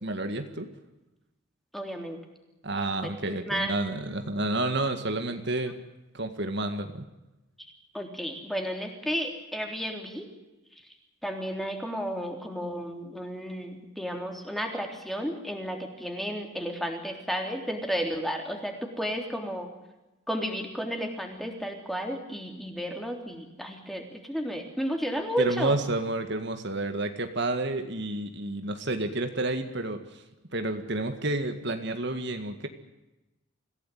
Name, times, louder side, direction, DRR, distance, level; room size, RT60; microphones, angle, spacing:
voice 1, 0.0-0.7 2.6-5.8 6.1-7.1 25.4-30.2 30.5-32.7, right 2 dB, 55° right, 7 dB, 2.0 m, -30 dB
voice 2, 1.7-2.2 3.0-3.7 7.6-10.3 11.2-19.7 20.3-25.8, equal, ahead, 3 dB, 3.5 m, -33 dB
26.0 x 17.0 x 9.3 m, 1.0 s
head